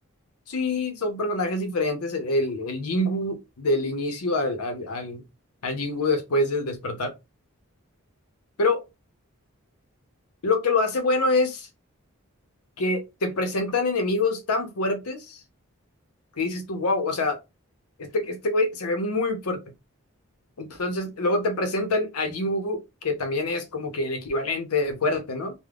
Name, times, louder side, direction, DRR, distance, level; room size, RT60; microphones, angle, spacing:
voice 1, 0.5-5.2 5.6-7.1 8.6-8.8 10.4-11.7 12.8-15.4 16.4-17.4 18.0-19.6 20.6-25.5, left 2 dB, 90° left, 0.7 m, -26 dB
3.4 x 2.1 x 2.3 m
head